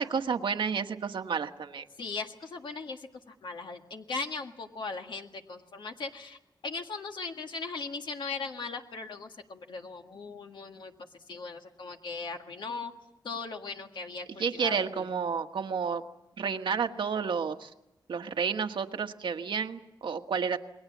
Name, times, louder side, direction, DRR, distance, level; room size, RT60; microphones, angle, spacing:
voice 1, 0.0-1.8 14.4-16.0 16.4-17.7 18.1-20.6, right 6 dB, 85° right, 6 dB, 1.4 m, -31 dB
voice 2, 2.0-10.9 11.3-12.9 13.2-15.1, left 4 dB, 75° left, 4 dB, 1.7 m, -38 dB
28.5 x 21.5 x 7.4 m, 0.91 s
wide cardioid pair, 170°, 8 cm